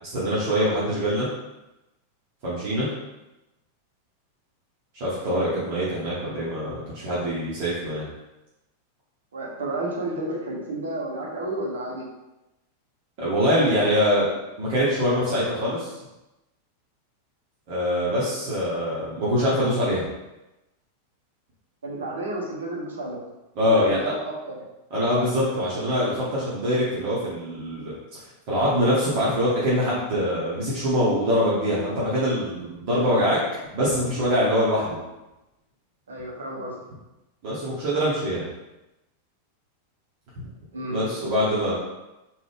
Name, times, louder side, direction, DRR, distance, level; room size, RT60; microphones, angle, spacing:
voice 1, 0.0-1.3 2.4-2.9 4.9-8.0 13.2-14.3 14.6-15.9 17.7-20.1 23.5-24.1 24.9-27.9 28.5-33.4 33.7-35.0 37.4-38.4 40.9-41.7, equal, 45° right, -8 dB, 1.2 m, -24 dB
voice 2, 9.3-12.1 21.8-23.2 23.6-24.7 36.1-36.8 40.7-41.0, right 2 dB, 65° right, -2 dB, 1.0 m, -31 dB
3.8 x 2.6 x 3.5 m, 0.98 s
figure-of-eight pair, 90°, 0 cm